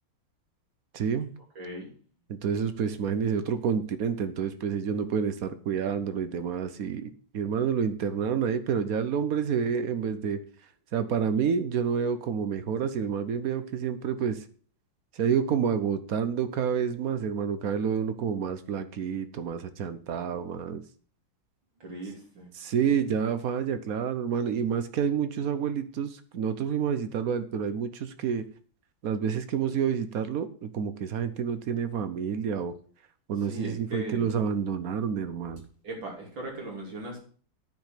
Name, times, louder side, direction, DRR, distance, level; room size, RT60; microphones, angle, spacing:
voice 1, 0.9-1.3 2.3-10.4 10.9-14.4 15.1-20.8 22.5-28.5 29.0-32.7 33.3-35.6, right 7 dB, 60° right, 11 dB, 1.1 m, -29 dB
voice 2, 1.6-1.9 21.8-22.5 33.5-34.3 35.8-37.2, right 1 dB, 75° right, -2 dB, 3.8 m, -38 dB
9.4 x 5.1 x 7.4 m, 0.44 s
omnidirectional pair, 2.1 m